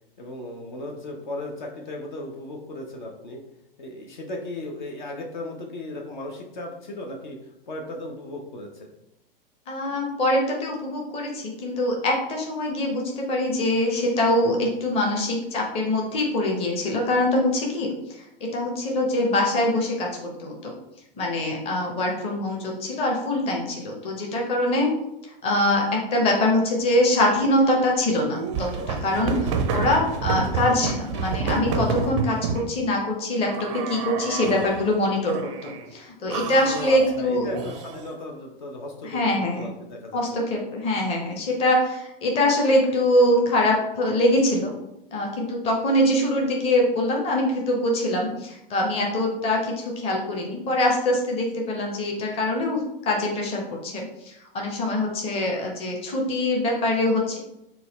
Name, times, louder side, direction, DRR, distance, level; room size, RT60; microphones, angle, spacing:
voice 1, 0.2-3.4 3.8-8.9 36.7-40.4, left 2 dB, 55° left, 1 dB, 0.7 m, -36 dB
voice 2, 9.7-17.9 18.4-20.7 21.2-24.9 25.4-35.3 35.6-37.5 39.0-39.7 40.1-44.7 45.1-57.4, left 1 dB, 20° left, 0 dB, 0.8 m, -23 dB
sound 1, 28.2-32.7 33.5-34.8 35.3-35.9 36.3-38.1, right 5 dB, 30° right, 0.4 m, -29 dB
4.0 x 2.3 x 4.1 m, 0.87 s
figure-of-eight pair, 105°, 29 cm